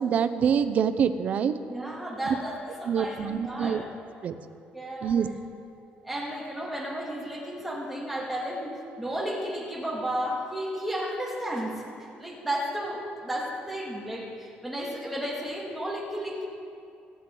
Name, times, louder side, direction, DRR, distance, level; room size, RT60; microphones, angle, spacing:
voice 1, 0.0-1.5 2.8-3.8 4.2-4.3 5.0-5.3, right 7 dB, 45° right, 11 dB, 0.7 m, -25 dB
voice 2, 1.7-3.8 4.7-5.1 6.0-16.5, equal, ahead, -4 dB, 2.3 m, -33 dB
25.5 x 9.8 x 3.9 m, 2.5 s
cardioid pair, 165°, 3 cm